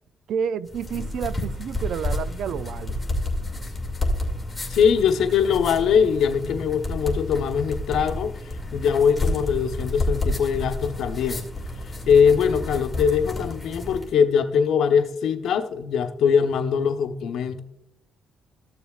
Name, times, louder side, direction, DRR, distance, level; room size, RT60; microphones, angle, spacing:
voice 1, 0.3-3.0, right 8 dB, 75° right, 16 dB, 0.4 m, -30 dB
sound 1, 0.7-14.1, left 1 dB, 15° left, 2.4 m, -30 dB
voice 2, 4.7-8.3 8.7-11.4 12.1-17.6, left 7 dB, 75° left, 6 dB, 0.9 m, -21 dB
14.5 x 7.0 x 2.4 m, 0.79 s
cardioid pair, 90°, 0 cm